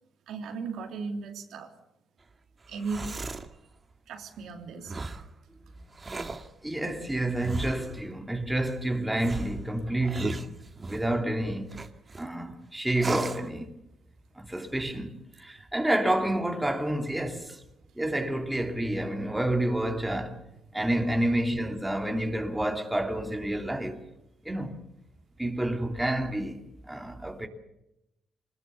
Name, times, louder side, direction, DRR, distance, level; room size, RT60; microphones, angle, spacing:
voice 1, 0.3-1.7 2.7-3.2 4.1-5.2 20.8-20.9, right 4 dB, 75° right, 3.4 m, -37 dB
sound 1, 2.6-3.5 4.8-5.3 5.9-6.5 7.4-8.0 9.2-11.1 11.7-12.3 13.0-13.5, right 3 dB, 30° right, 1.9 m, -35 dB
voice 2, 6.6-10.5 10.9-11.7 12.2-13.7 14.4-17.6 18.0-20.4 20.7-24.0 24.4-24.8 25.4-26.6 26.9-27.5, right 1 dB, 10° right, 2.9 m, -29 dB
25.5 x 20.0 x 7.0 m
cardioid pair, 90°, 0 cm